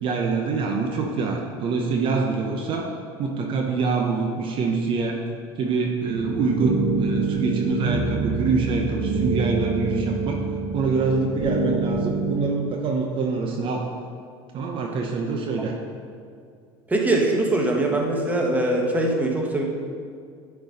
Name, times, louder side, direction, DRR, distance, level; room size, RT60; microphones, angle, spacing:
voice 1, 0.0-2.9 3.2-5.2 5.6-10.4 10.7-13.9 14.5-15.7, right 4 dB, 45° right, 1 dB, 0.9 m, -25 dB
sound 1, 6.1-12.4, right 3 dB, 65° right, 2.1 m, -26 dB
voice 2, 16.9-19.6, right 2 dB, 15° right, 0 dB, 1.4 m, -22 dB
10.5 x 4.6 x 5.3 m, 2.2 s
supercardioid pair, 110°, 12 cm